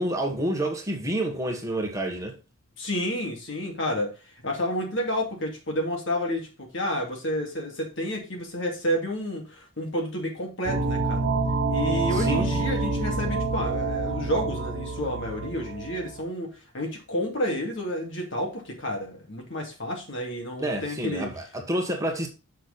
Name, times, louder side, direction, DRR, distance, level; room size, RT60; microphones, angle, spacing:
voice 1, 0.0-2.4 12.1-12.5 20.6-22.3, right 1 dB, 15° right, 1.5 m, -28 dB
voice 2, 2.8-11.3 11.7-21.3, equal, 65° left, 2.5 m, -30 dB
sound 1, 10.6-16.2, right 3 dB, 60° right, 1.4 m, -27 dB
6.5 x 6.4 x 4.1 m
head